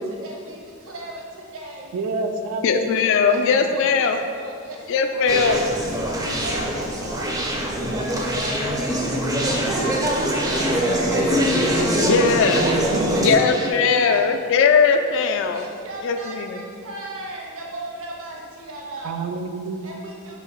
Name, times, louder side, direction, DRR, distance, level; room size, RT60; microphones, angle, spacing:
voice 1, 0.0-1.9 3.3-5.3 6.1-11.5 12.3-14.3 15.5-19.2 19.8-20.4, right 2 dB, 65° right, -2 dB, 0.7 m, -36 dB
voice 2, 1.9-3.3 3.6-3.8 12.0-13.3 13.7-13.9 19.0-20.0, right 3 dB, 85° right, 5 dB, 0.3 m, -29 dB
voice 3, 2.6-4.2 4.9-5.6 12.1-12.6 13.2-15.7 16.0-16.6, left 5 dB, 60° left, 7 dB, 0.3 m, -19 dB
Conversation, 5.3-13.7, equal, 15° right, 0.4 m, -23 dB
3.9 x 2.8 x 4.4 m, 2.3 s
head